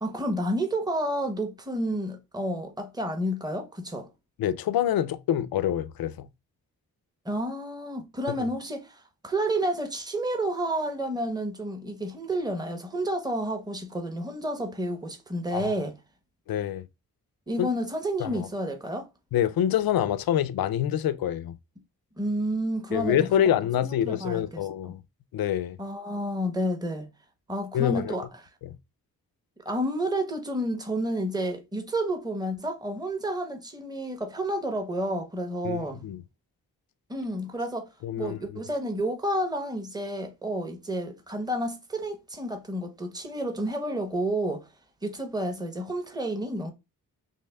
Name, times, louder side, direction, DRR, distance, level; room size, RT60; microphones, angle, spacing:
voice 1, 0.0-4.1 7.2-16.0 17.5-19.1 22.2-23.3 23.8-24.9 25.8-27.1 27.5-28.5 29.6-36.0 37.1-37.9 38.2-44.7 45.0-46.7, right 1 dB, 10° right, 0.9 m, -30 dB
voice 2, 4.4-6.3 15.5-15.7 16.5-16.8 17.6-17.7 18.2-18.5 19.3-21.6 22.9-25.0 25.3-25.8 27.7-28.1 35.6-36.2 38.0-38.4, left 10 dB, 65° left, 0.5 m, -26 dB
5.3 x 2.0 x 2.2 m
supercardioid pair, 45°, 39 cm